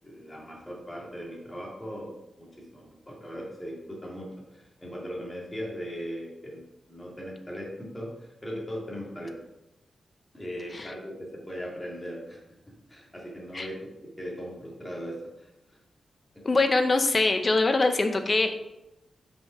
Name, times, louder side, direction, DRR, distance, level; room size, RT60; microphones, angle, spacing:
voice 1, 0.0-2.1 2.4-9.4 10.3-12.4 12.9-13.9 14.2-15.8, equal, 10° left, -4 dB, 2.1 m, -39 dB
voice 2, 16.4-18.7, left 3 dB, 30° left, 7 dB, 0.7 m, -23 dB
6.0 x 5.5 x 5.6 m, 0.92 s
wide cardioid pair, 165°, 0 cm